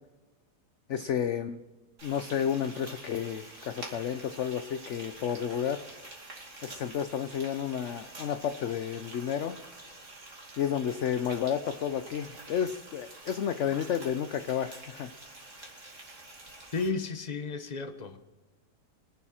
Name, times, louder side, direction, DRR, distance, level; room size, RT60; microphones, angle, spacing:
voice 1, 0.9-1.6 2.0-5.8 6.6-9.6 10.6-15.1, left 8 dB, 60° left, 9 dB, 0.8 m, -31 dB
Frying (food), 2.0-16.9, right 2 dB, 45° right, 3.0 m, -47 dB
voice 2, 16.7-18.2, left 4 dB, 30° left, 8 dB, 1.1 m, -33 dB
25.0 x 9.0 x 4.4 m, 1.2 s
omnidirectional pair, 1.8 m